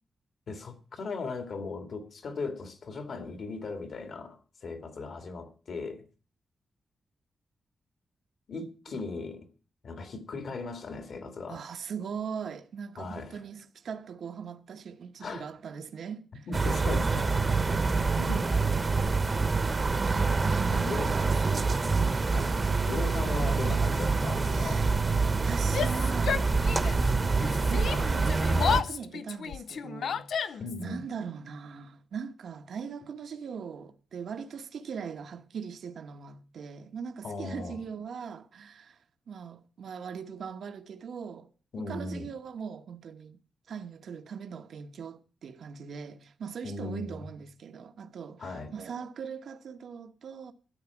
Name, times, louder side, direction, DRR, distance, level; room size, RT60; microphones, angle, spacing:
voice 1, 0.5-6.0 8.5-9.5 9.8-11.6 13.0-13.4 15.2-15.5 16.5-17.8 18.2-18.5 20.8-21.1 22.3-22.5 22.9-24.9 30.6-31.0 37.2-37.8 41.7-42.3 46.6-47.2 48.4-48.7, left 3 dB, 55° left, 2.5 m, -37 dB
voice 2, 11.5-16.5 20.4-22.2 23.2-23.8 24.5-25.0 25.4-26.8 27.6-41.5 41.9-43.4 43.7-50.5, right 6 dB, 70° right, 1.1 m, -40 dB
sound 1, 16.5-28.8, right 4 dB, 25° right, 1.0 m, -26 dB
Yell, 25.6-27.1 27.4-30.8, left 7 dB, 75° left, 0.6 m, -32 dB
13.5 x 9.5 x 7.1 m
wide cardioid pair, 165°, 0 cm